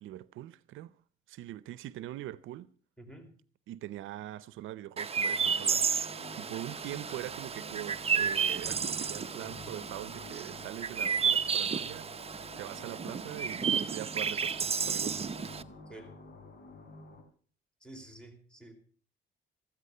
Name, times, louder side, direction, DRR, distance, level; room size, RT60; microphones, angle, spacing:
voice 1, 0.0-0.9 1.3-2.7 3.7-5.9 6.4-12.1 12.6-15.2, right 14 dB, 85° right, 0.6 m, -42 dB
voice 2, 3.0-3.3 15.9-16.1 17.8-18.7, right 1 dB, 5° left, 4.7 m, -49 dB
Chirp tweet, 5.0-15.6, right 6 dB, 30° right, 0.7 m, -32 dB
sound 1, 5.3-17.2, left 3 dB, 55° left, 4.1 m, -50 dB
15.0 x 14.0 x 5.5 m
cardioid pair, 90°, 20 cm